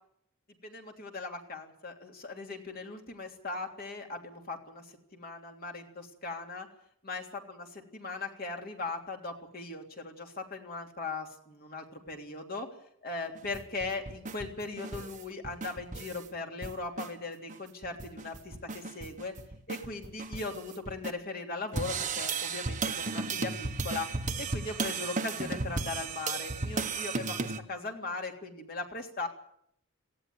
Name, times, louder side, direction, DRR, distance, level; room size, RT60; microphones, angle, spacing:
voice 1, 0.6-4.8 5.1-6.7 7.0-12.7 13.0-19.3 19.7-24.1 24.4-29.3, left 3 dB, 45° left, 2 dB, 3.2 m, -39 dB
sound 1, 13.3-16.3 16.6-17.1 17.5-17.6 17.8-21.1 21.7-27.6, right 4 dB, 35° right, 1.4 m, -35 dB
18.5 x 16.0 x 9.5 m, 0.70 s
head